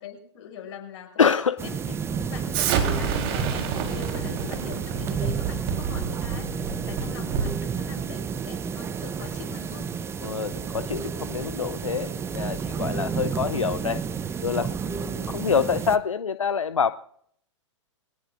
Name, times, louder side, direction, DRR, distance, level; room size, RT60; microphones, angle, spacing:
voice 1, 0.0-1.3 1.6-1.8 2.1-9.9, left 7 dB, 55° left, 1 dB, 6.8 m, -42 dB
voice 2, 1.2-1.6 10.2-14.0 14.4-16.9, left 6 dB, 85° left, 13 dB, 0.6 m, -26 dB
sound 1, 1.6-16.0, right 6 dB, 15° right, 0.8 m, -31 dB
Explosion, 2.5-7.6, right 7 dB, 45° right, 3.8 m, -28 dB
24.5 x 18.0 x 2.6 m, 0.67 s
figure-of-eight pair, 110°, 16 cm